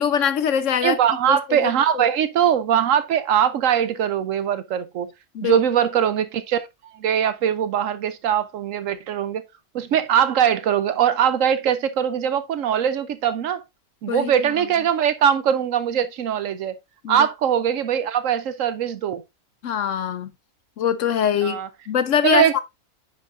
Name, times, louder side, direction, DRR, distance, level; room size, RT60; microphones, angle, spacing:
voice 1, 0.0-1.0 1.3-2.0 5.3-5.6 14.1-14.3 17.0-17.3 19.6-20.3 20.8-21.6 21.9-22.6, left 8 dB, 65° left, 0.9 m, -23 dB
voice 2, 0.8-5.1 5.4-6.7 7.0-9.4 9.7-13.6 14.0-16.8 17.1-19.2 21.4-21.7 22.2-22.6, right 9 dB, 65° right, 0.9 m, -21 dB
9.6 x 5.1 x 2.5 m
omnidirectional pair, 1.6 m